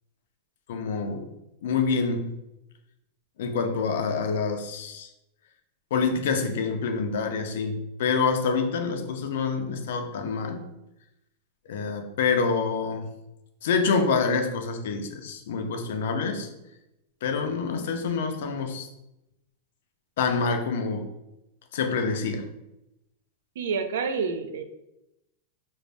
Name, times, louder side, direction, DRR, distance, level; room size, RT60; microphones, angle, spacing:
voice 1, 0.7-1.3 1.6-2.3 3.4-5.1 5.9-10.6 11.7-13.1 13.6-16.5 17.2-18.9 20.2-21.1 21.7-22.5, left 5 dB, 65° left, 6 dB, 0.4 m, -27 dB
voice 2, 23.6-24.6, right 5 dB, 75° right, 8 dB, 0.3 m, -28 dB
2.5 x 2.0 x 3.3 m, 0.89 s
supercardioid pair, 175°, 0 cm